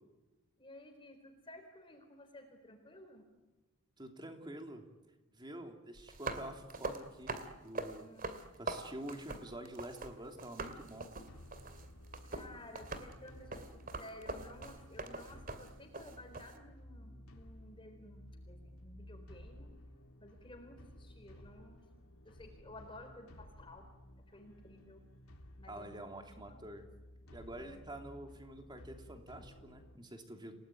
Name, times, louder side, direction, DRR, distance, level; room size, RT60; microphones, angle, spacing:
voice 1, 0.6-3.2 8.0-8.3 12.3-13.7 14.0-19.7 20.2-21.8 22.2-23.8 24.3-25.0 25.6-26.1 26.5-26.7 27.6-27.8, left 1 dB, 25° left, 5 dB, 4.0 m, -54 dB
voice 2, 4.0-4.8 5.3-8.1 8.6-11.1 25.7-26.8 27.3-30.5, right 1 dB, 20° right, 4 dB, 3.1 m, -47 dB
sound 1, 6.0-10.1 10.4-16.6, right 3 dB, 40° right, 2.3 m, -43 dB
sound 2, 10.3-30.0, left 1 dB, 85° left, 2.8 m, -55 dB
29.5 x 18.5 x 9.2 m, 1.2 s
head